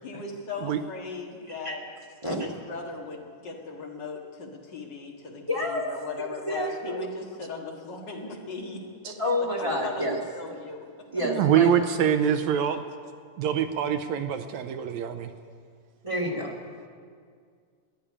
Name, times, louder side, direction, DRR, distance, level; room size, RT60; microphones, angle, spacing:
voice 1, 0.0-1.8 2.2-11.1, left 4 dB, 40° left, 0 dB, 1.9 m, -38 dB
voice 2, 5.5-5.9 6.5-7.0 9.2-10.2 11.1-11.7 16.0-16.6, left 1 dB, 20° right, -3 dB, 0.9 m, -29 dB
voice 3, 11.2-12.8 13.4-15.3, right 9 dB, 80° right, 8 dB, 1.7 m, -24 dB
14.0 x 10.5 x 9.8 m, 2.1 s
omnidirectional pair, 3.7 m